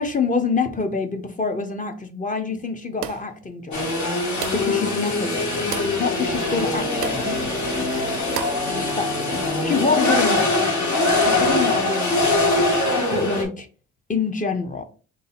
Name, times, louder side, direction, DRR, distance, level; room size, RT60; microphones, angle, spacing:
voice 1, 0.0-3.9 4.5-5.7 6.0-7.4 8.7-12.7 13.1-13.7 14.1-14.8, left 4 dB, 25° left, 0.7 m, -26 dB
sound 1, 3.0-3.4 4.4-4.8 5.7-6.0 7.0-7.3 8.3-8.7, right 10 dB, 90° right, 0.5 m, -32 dB
sound 2, 3.7-13.4, left 2 dB, 70° left, 1.6 m, -22 dB
sound 3, 4.5-10.5, left 1 dB, 5° right, 0.4 m, -34 dB
3.7 x 2.7 x 4.1 m
cardioid pair, 115°, 31 cm